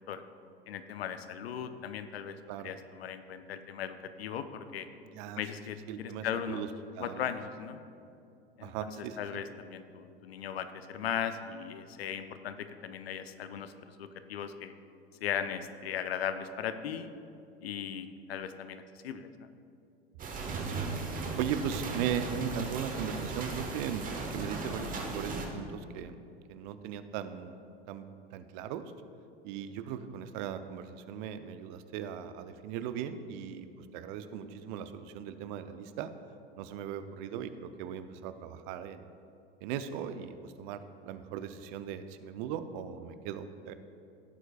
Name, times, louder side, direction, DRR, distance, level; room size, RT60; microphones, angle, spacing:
voice 1, 0.7-2.4 2.6-4.9 5.4-6.6 7.0-7.8 8.6-14.7 15.2-17.1 17.6-19.5, left 8 dB, 70° left, 10 dB, 0.7 m, -38 dB
voice 2, 5.9-6.7 7.0-7.3 8.6-9.2 21.4-26.2 26.5-27.6 27.9-28.8 29.4-36.1 36.6-39.1 39.6-43.7, right 8 dB, 50° right, 11 dB, 0.6 m, -38 dB
sound 1, 20.2-25.5, right 3 dB, 25° right, 1.4 m, -37 dB
16.0 x 7.9 x 2.4 m, 2.6 s
figure-of-eight pair, 85°, 32 cm